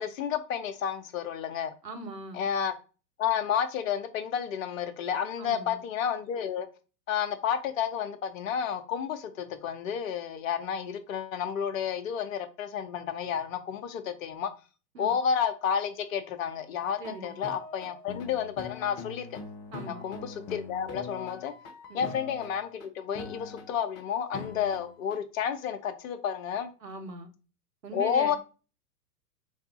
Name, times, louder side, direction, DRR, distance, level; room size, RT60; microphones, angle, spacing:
voice 1, 0.0-1.7 2.3-2.7 3.2-6.7 7.1-14.5 15.0-19.3 19.9-21.5 21.9-26.7 27.9-28.4, left 8 dB, 55° left, 0.8 m, -31 dB
voice 2, 1.8-2.4 5.4-5.8 14.9-15.1 17.0-17.3 19.7-20.1 21.9-22.1 26.8-27.3 27.8-28.4, right 3 dB, 85° right, 1.0 m, -40 dB
sound 1, 16.8-22.9 23.1-24.0 24.3-25.2, left 4 dB, 25° left, 0.6 m, -43 dB
3.4 x 2.6 x 3.7 m
figure-of-eight pair, 105°, 48 cm